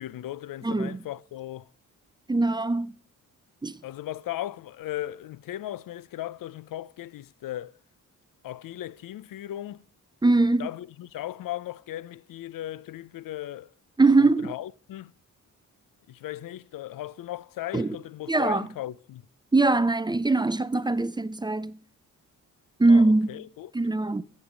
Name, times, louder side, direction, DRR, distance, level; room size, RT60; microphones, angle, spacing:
voice 1, 0.0-1.7 3.8-7.7 8.4-9.8 10.6-13.7 14.2-15.1 16.1-19.2 22.9-23.7, left 13 dB, 80° left, 0.6 m, -37 dB
voice 2, 0.6-1.0 2.3-2.9 3.6-3.8 10.2-10.7 14.0-14.5 17.7-18.0 18.3-18.7 19.5-21.8 22.8-23.4 23.7-24.2, right 3 dB, 15° right, 0.5 m, -22 dB
14.5 x 8.9 x 5.1 m
cardioid pair, 105°, 33 cm